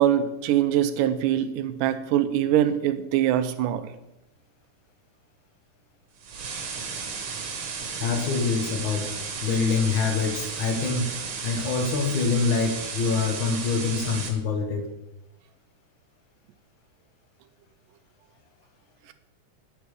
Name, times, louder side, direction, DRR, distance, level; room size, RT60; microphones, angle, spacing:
voice 1, 0.0-3.9, right 11 dB, 90° right, 11 dB, 2.2 m, -23 dB
sound 1, 6.2-14.3, right 5 dB, 55° right, 1.9 m, -34 dB
voice 2, 8.0-11.2 11.4-14.9, left 5 dB, 60° left, 4 dB, 1.3 m, -25 dB
9.0 x 6.9 x 4.7 m, 0.91 s
omnidirectional pair, 3.6 m